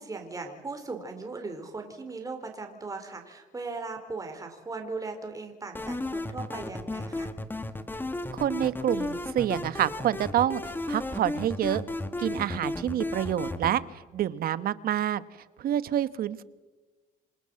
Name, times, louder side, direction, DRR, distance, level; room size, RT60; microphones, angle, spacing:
voice 1, 0.0-7.3, right 3 dB, 20° right, 4 dB, 4.1 m, -38 dB
sound 1, 5.7-13.7, left 2 dB, 10° left, 1.7 m, -34 dB
voice 2, 8.3-10.6 10.9-11.8 12.2-13.8 14.1-15.2 15.6-16.4, right 11 dB, 60° right, 15 dB, 1.3 m, -27 dB
28.0 x 25.5 x 7.7 m, 1.2 s
cardioid pair, 110°, 17 cm